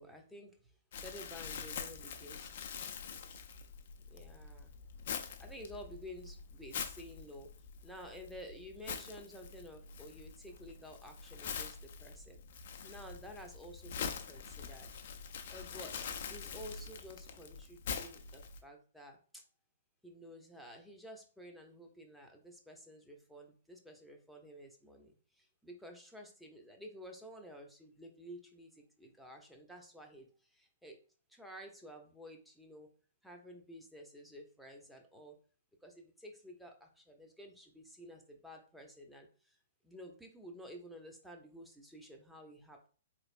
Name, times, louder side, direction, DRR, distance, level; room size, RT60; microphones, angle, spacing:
voice 1, 0.0-0.6 1.0-2.6 4.0-4.7 5.4-7.5 7.8-14.9 15.5-16.0 16.3-19.4 20.0-31.0 31.3-32.9 33.2-35.4 35.8-39.6 39.8-42.9, equal, ahead, 1 dB, 0.8 m, -52 dB
Crumpling crinkling, 0.9-18.6, left 6 dB, 55° left, 0.5 m, -45 dB
4.2 x 3.2 x 2.5 m, 0.40 s
figure-of-eight pair, 120°, 0 cm